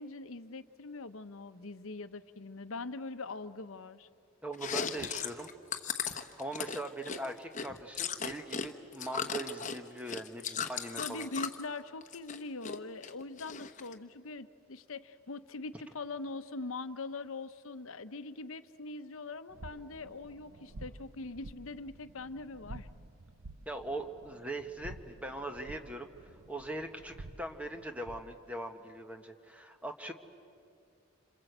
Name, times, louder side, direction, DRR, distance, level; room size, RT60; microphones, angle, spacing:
voice 1, 0.0-4.1 11.0-22.9, left 3 dB, 80° left, 11 dB, 0.9 m, -42 dB
voice 2, 4.4-5.5 6.4-11.3 23.7-30.1, right 1 dB, 5° right, 5 dB, 1.2 m, -41 dB
Chewing mastication, 4.5-8.7 8.9-11.6 12.0-12.8 13.0-13.9, left 6 dB, 35° left, 1.1 m, -37 dB
sound 1, 19.5-28.4, right 2 dB, 75° right, 0.8 m, -50 dB
27.5 x 27.0 x 8.0 m, 2.5 s
head